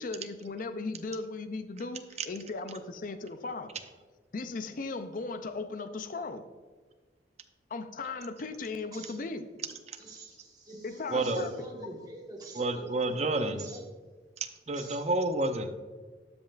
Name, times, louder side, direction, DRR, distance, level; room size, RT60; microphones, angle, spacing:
voice 1, 0.0-3.7 4.3-6.5 7.7-9.4 10.8-11.5, left 3 dB, 50° left, 10 dB, 0.5 m, -37 dB
voice 2, 9.9-13.8 14.7-15.0, right 2 dB, 20° right, -1 dB, 1.4 m, -45 dB
voice 3, 11.1-11.5 12.6-13.6 14.4-15.7, right 2 dB, 40° right, 8 dB, 0.6 m, -29 dB
13.0 x 5.2 x 2.4 m, 1.4 s
head